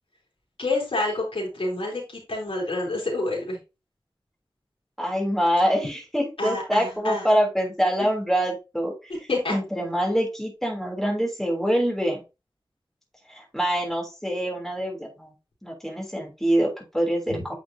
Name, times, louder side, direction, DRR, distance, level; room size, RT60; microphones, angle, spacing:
voice 1, 0.6-3.6 6.4-7.3 9.3-9.6 17.3-17.4, left 2 dB, 80° left, -3 dB, 3.4 m, -28 dB
voice 2, 5.0-8.9 9.5-12.2 13.3-15.3 15.6-17.5, equal, 5° left, -1 dB, 3.2 m, -25 dB
8.9 x 5.2 x 2.8 m, 0.27 s
wide cardioid pair, 60°, 9 cm